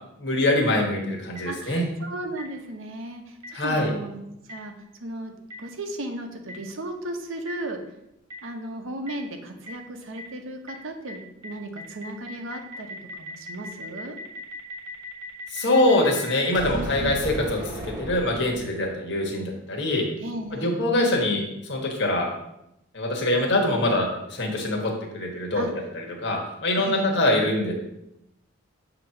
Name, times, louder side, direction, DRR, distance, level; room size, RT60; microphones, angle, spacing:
voice 1, 0.2-1.8 3.5-3.9 15.5-20.1 20.6-22.3 22.9-25.7 25.9-27.7, left 1 dB, 55° left, 0 dB, 1.2 m, -24 dB
Boom, 1.3-1.4 2.4-2.5 3.4-3.5 4.5-4.6 5.5-5.6 6.5-6.6 7.5-7.6 8.3-8.4 9.1-9.2 9.7-9.8 10.2-10.3 10.7-10.8 11.1-11.2 11.4-19.0, left 1 dB, 20° right, 1.1 m, -36 dB
voice 2, 1.4-4.7 5.0-5.3 5.6-7.8 8.4-14.2 16.7-17.2 20.2-20.7 25.5-25.7 26.7-27.1, right 1 dB, 75° right, 5 dB, 0.9 m, -35 dB
7.1 x 3.0 x 5.6 m, 0.84 s
head